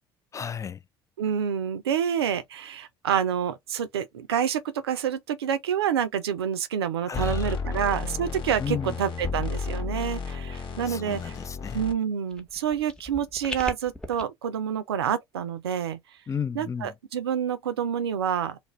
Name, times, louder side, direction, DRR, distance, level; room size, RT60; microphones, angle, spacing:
voice 1, 0.3-0.8 7.1-7.8 8.6-9.0 10.9-11.8 16.3-16.9, left 7 dB, 25° left, 0.3 m, -33 dB
voice 2, 1.2-11.3 11.7-16.0 16.6-18.6, right 8 dB, 85° right, 0.5 m, -28 dB
sound 1, 7.1-11.9, left 5 dB, 40° left, 1.0 m, -32 dB
sound 2, 12.3-14.2, left 1 dB, 5° left, 0.9 m, -38 dB
2.4 x 2.1 x 3.1 m
hypercardioid pair, 65°, 13 cm